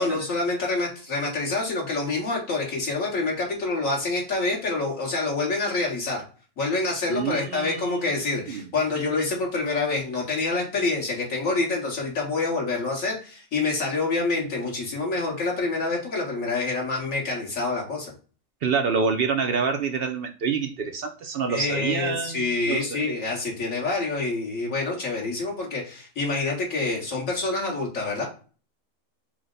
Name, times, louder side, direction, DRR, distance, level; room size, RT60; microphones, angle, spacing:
voice 1, 0.0-6.2 6.6-18.1 21.5-28.3, left 3 dB, 90° left, -3 dB, 2.1 m, -27 dB
voice 2, 7.1-8.1 8.5-8.7 18.6-23.1, right 5 dB, 60° right, 5 dB, 0.6 m, -27 dB
4.7 x 2.1 x 3.7 m, 0.37 s
omnidirectional pair, 1.3 m